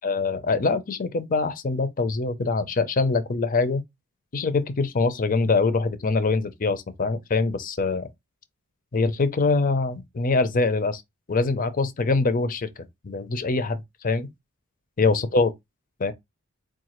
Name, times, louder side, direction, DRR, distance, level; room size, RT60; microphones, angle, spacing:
voice 1, 0.0-3.8 4.3-8.1 8.9-11.0 11.3-12.7 13.0-14.3 15.0-15.5 16.0-16.1, left 3 dB, 40° left, 0.5 m, -24 dB
4.7 x 2.4 x 3.0 m
head